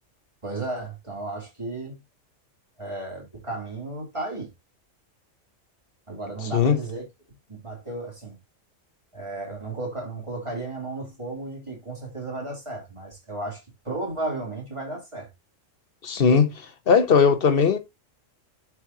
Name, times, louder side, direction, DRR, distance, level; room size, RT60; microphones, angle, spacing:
voice 1, 0.4-2.0 2.8-4.5 6.1-7.0 7.5-8.3 9.1-15.3, right 2 dB, 25° right, 3.4 m, -34 dB
voice 2, 16.0-16.5 16.9-17.8, left 6 dB, 50° left, 1.2 m, -18 dB
11.0 x 4.8 x 2.8 m
omnidirectional pair, 1.3 m